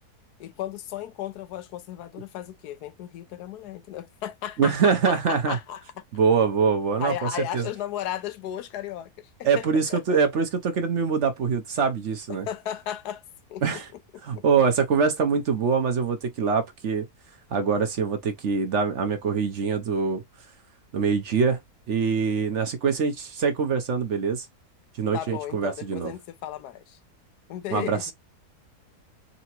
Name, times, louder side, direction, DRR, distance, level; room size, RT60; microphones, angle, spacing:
voice 1, 0.4-5.8 7.0-9.3 9.6-10.2 12.5-13.2 13.5-13.8 25.1-27.0 27.5-28.1, left 11 dB, 80° left, 1.2 m, -35 dB
voice 2, 4.6-5.6 6.1-7.1 7.5-7.7 9.4-12.5 13.6-13.9 14.2-17.1 17.5-20.2 20.9-21.6 21.9-24.5 25.0-26.1 27.7-28.1, right 5 dB, 55° right, 0.9 m, -24 dB
3.9 x 3.4 x 2.9 m
omnidirectional pair, 1.7 m